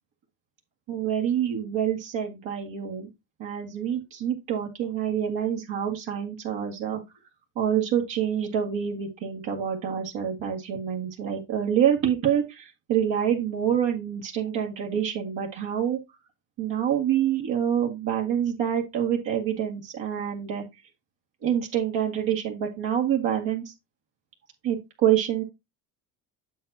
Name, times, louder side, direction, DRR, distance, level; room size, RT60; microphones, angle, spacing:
voice 1, 0.9-3.1 3.4-7.0 7.6-16.0 16.6-20.6 21.4-23.7 24.6-25.4, right 9 dB, 65° right, 0 dB, 2.1 m, -26 dB
7.7 x 6.9 x 2.7 m, 0.21 s
hypercardioid pair, 60°, 47 cm